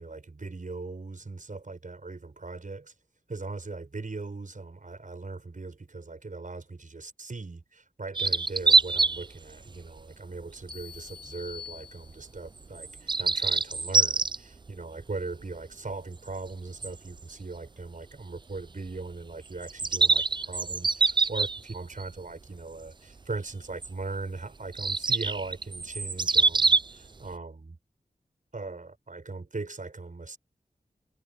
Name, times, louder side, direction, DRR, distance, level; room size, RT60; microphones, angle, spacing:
voice 1, 0.0-2.9 3.3-27.8 28.5-30.4, right 3 dB, 55° right, 6.3 m, -39 dB
sound 1, 8.2-9.3 9.8-10.0 10.8-11.0 12.8-14.4 16.8-16.9 17.2-17.3 19.6-22.0 23.8-23.9 24.7-26.9, right 4 dB, 30° right, 0.4 m, -24 dB
sound 2, 10.7-12.6, left 7 dB, 85° right, 3.7 m, -46 dB
wide cardioid pair, 60°, 16 cm